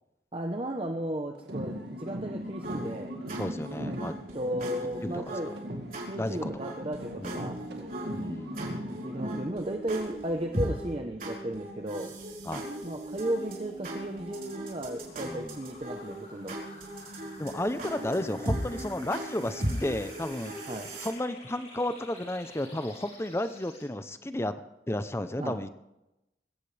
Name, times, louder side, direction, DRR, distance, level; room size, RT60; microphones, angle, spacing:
voice 1, 0.3-3.1 3.9-4.0 4.3-5.5 6.1-7.6 8.9-12.1 12.8-16.5 20.7-20.9 25.4-25.6, right 1 dB, 30° right, 3 dB, 0.9 m, -35 dB
sound 1, 1.4-5.3 5.6-9.5, equal, 75° right, 2.3 m, -39 dB
sound 2, 2.6-21.1, right 1 dB, 50° right, 4.5 m, -38 dB
voice 2, 3.4-4.1 5.0-5.1 6.2-6.5 7.2-7.5 8.1-8.6 12.4-12.6 15.2-15.6 17.4-20.5 21.0-24.5 24.9-25.7, left 1 dB, 15° left, 11 dB, 0.6 m, -32 dB
sound 3, 9.6-23.8, left 2 dB, 40° left, 6.3 m, -52 dB
21.5 x 16.5 x 3.4 m, 0.94 s
head